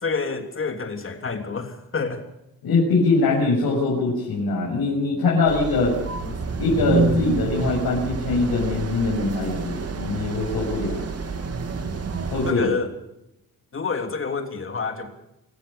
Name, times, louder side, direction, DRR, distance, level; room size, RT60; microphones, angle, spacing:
voice 1, 0.0-2.3 6.2-6.3 12.5-12.9 13.7-15.1, left 4 dB, 35° left, 6 dB, 3.1 m, -28 dB
voice 2, 2.6-5.9 6.6-10.9 12.3-12.7, left 3 dB, 75° left, -4 dB, 7.3 m, -22 dB
sound 1, 5.5-12.5, right 3 dB, 45° right, 2.4 m, -28 dB
27.0 x 14.5 x 7.0 m, 0.86 s
wide cardioid pair, 140°, 36 cm